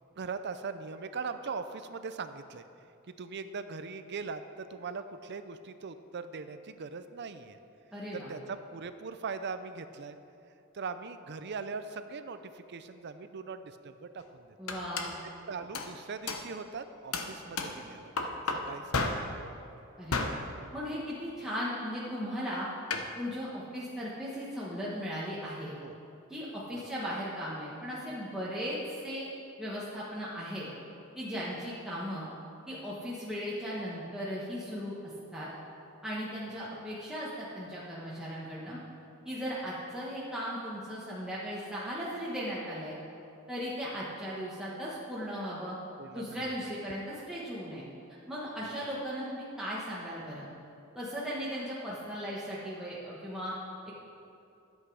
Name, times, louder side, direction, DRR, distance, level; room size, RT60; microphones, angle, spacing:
voice 1, 0.2-2.7 3.1-7.6 8.1-10.2 10.7-14.6 15.5-18.1 18.5-18.9 19.2-19.3 25.8-26.0 36.6-36.7 46.0-46.7, right 5 dB, 55° right, 10 dB, 0.5 m, -40 dB
voice 2, 7.9-8.3 14.6-15.2 20.0-20.3 20.7-22.7 23.2-25.7 26.3-29.3 29.6-30.7 31.1-32.3 32.7-34.9 35.3-35.5 36.0-38.8 39.2-43.0 43.5-45.8 46.1-47.8 48.3-50.5 50.9-53.5 53.9-54.0, equal, 5° right, -8 dB, 1.4 m, -37 dB
sound 1, 14.2-14.3 14.7-15.1 15.7-16.0 16.3-16.5 17.1-17.9 18.2-19.4 20.1-20.5 22.9-23.1, left 3 dB, 85° left, 0.9 m, -33 dB
12.5 x 8.2 x 4.8 m, 2.7 s
head